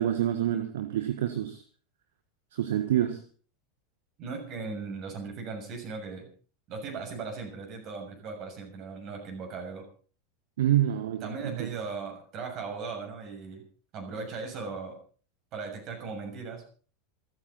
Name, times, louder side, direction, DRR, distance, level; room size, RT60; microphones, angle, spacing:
voice 1, 0.0-1.6 2.5-3.2 10.6-11.7, right 12 dB, 65° right, 9 dB, 1.5 m, -27 dB
voice 2, 4.2-6.3 6.7-9.9 11.2-13.6 13.9-15.0 15.5-16.6, right 4 dB, 40° right, 3 dB, 6.9 m, -38 dB
27.5 x 9.5 x 4.2 m, 0.41 s
figure-of-eight pair, 80°, 0 cm